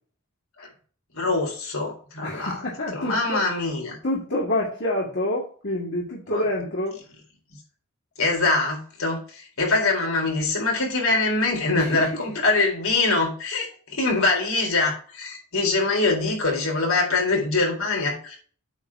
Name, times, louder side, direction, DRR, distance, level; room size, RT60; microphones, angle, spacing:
voice 1, 1.1-2.6 2.9-4.0 6.3-6.4 8.2-18.4, left 3 dB, 75° left, -1 dB, 3.9 m, -23 dB
voice 2, 2.2-3.4 4.0-7.0 11.8-12.2, left 1 dB, 55° left, -3 dB, 1.9 m, -27 dB
8.2 x 4.1 x 7.0 m, 0.42 s
head